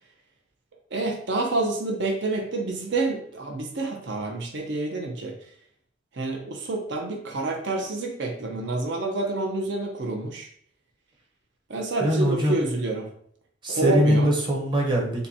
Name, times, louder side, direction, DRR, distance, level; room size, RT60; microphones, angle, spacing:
voice 1, 0.9-5.3 6.1-10.5 11.7-13.1 13.7-14.3, right 2 dB, 65° right, 2 dB, 0.8 m, -28 dB
voice 2, 12.0-12.6 13.6-15.3, equal, 25° right, 0 dB, 0.9 m, -22 dB
6.8 x 2.3 x 2.8 m, 0.62 s
head